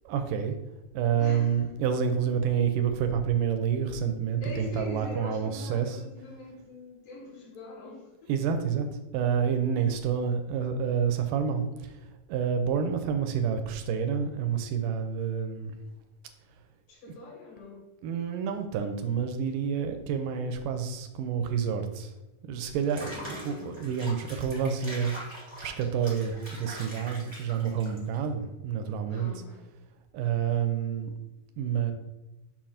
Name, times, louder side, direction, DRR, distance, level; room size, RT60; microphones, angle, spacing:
voice 1, 0.1-0.6 0.9-6.0 8.3-8.9 9.1-12.0 12.3-15.8 18.0-22.1 22.4-25.1 25.6-29.3 30.1-31.1 31.6-31.9, right 7 dB, 80° right, 6 dB, 2.0 m, -28 dB
voice 2, 1.2-1.6 2.1-2.2 4.4-8.3 8.6-8.7 16.9-17.9 23.2-23.7 29.1-29.6, left 2 dB, 75° left, -3 dB, 3.6 m, -43 dB
Water / Bathtub (filling or washing), 22.8-28.3, equal, 45° right, 0.3 m, -43 dB
7.1 x 2.6 x 5.6 m, 1.0 s
omnidirectional pair, 4.1 m